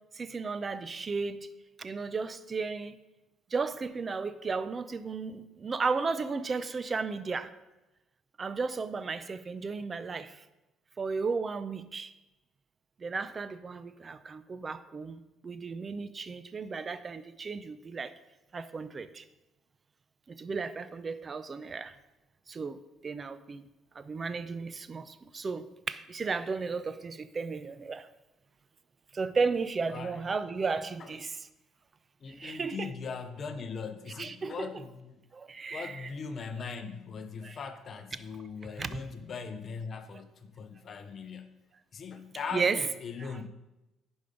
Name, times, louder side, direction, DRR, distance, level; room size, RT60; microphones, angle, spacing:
voice 1, 0.1-1.4 1.8-3.0 3.5-7.5 8.4-10.4 11.0-12.1 13.0-18.1 18.5-19.2 20.3-21.9 22.5-23.6 23.9-28.1 29.1-31.4 32.3-32.9 34.2-34.7 35.3-36.1 37.4-37.6 38.8-38.9 42.5-42.8 43.2-43.3, right 4 dB, 25° right, 13 dB, 0.5 m, -34 dB
voice 2, 32.2-35.2 35.7-41.5 41.9-43.5, left 5 dB, 35° left, 9 dB, 0.7 m, -40 dB
10.0 x 5.3 x 5.2 m, 0.98 s
cardioid pair, 135°, 0 cm